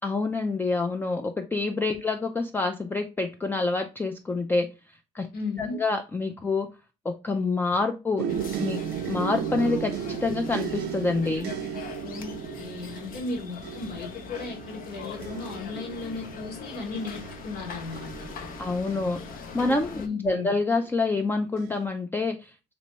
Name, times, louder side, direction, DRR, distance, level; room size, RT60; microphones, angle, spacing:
voice 1, 0.0-4.7 5.1-5.3 5.6-6.7 7.1-8.3 8.6-11.5 18.6-19.2 19.5-22.5, left 3 dB, 10° left, 0.3 m, -27 dB
voice 2, 5.3-5.8 12.0-18.3 19.9-20.5, left 3 dB, 70° left, 1.5 m, -35 dB
sound 1, 8.2-20.0 20.7-21.2 21.6-21.8, right 8 dB, 70° right, 0.5 m, -35 dB
sound 2, 8.3-20.1, left 5 dB, 55° left, 0.7 m, -41 dB
3.0 x 2.9 x 3.1 m
cardioid pair, 110°, 17 cm